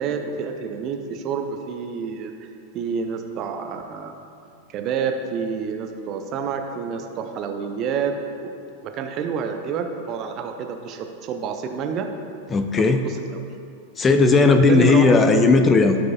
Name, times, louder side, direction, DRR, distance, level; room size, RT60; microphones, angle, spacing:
voice 1, 0.0-4.1 4.7-8.5 8.8-12.1 12.9-13.4 14.4-15.4, right 6 dB, 35° right, 5 dB, 0.6 m, -28 dB
voice 2, 12.5-13.0 14.0-16.0, left 3 dB, 20° left, 7 dB, 0.4 m, -16 dB
13.5 x 4.7 x 2.4 m, 2.5 s
figure-of-eight pair, 90°, 0 cm